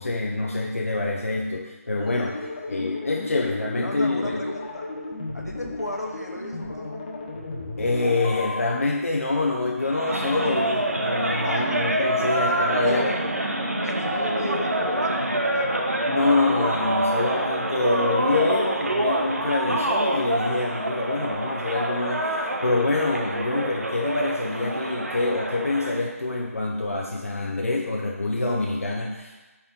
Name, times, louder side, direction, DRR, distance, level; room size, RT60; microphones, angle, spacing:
voice 1, 0.0-2.4 2.7-4.5 7.8-13.1 16.1-29.5, left 2 dB, 60° left, -1 dB, 0.8 m, -26 dB
sound 1, 2.0-8.6, left 2 dB, 25° left, 0.9 m, -34 dB
voice 2, 3.8-4.9 5.3-7.0 11.4-13.2 13.8-15.8, left 1 dB, 85° left, 0 dB, 1.3 m, -35 dB
sound 2, 9.8-26.0, right 1 dB, 70° right, 0.9 m, -26 dB
8.5 x 4.2 x 3.8 m, 1.2 s
figure-of-eight pair, 155°, 8 cm